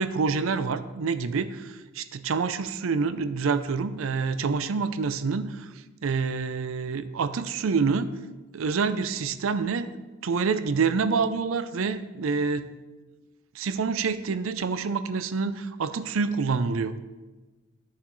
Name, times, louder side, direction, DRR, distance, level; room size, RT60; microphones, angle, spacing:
voice 1, 0.0-5.7 6.0-8.1 8.5-10.0 10.2-12.7 13.6-16.9, right 5 dB, 75° right, 12 dB, 0.5 m, -27 dB
12.0 x 7.1 x 3.1 m, 1.2 s
head